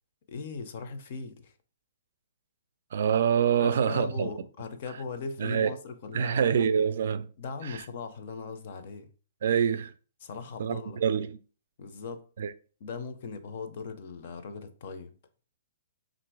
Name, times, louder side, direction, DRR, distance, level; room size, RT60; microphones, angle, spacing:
voice 1, 0.3-1.5 3.6-6.5 7.4-9.1 10.2-11.0 11.8-12.3 12.8-15.1, left 5 dB, 40° left, 0.5 m, -39 dB
voice 2, 2.9-4.3 5.4-5.7 6.1-7.3 7.6-7.8 9.4-9.9 10.6-11.4 12.4-12.5, right 7 dB, 55° right, 0.4 m, -26 dB
3.7 x 2.5 x 4.6 m
hypercardioid pair, 170°, 0 cm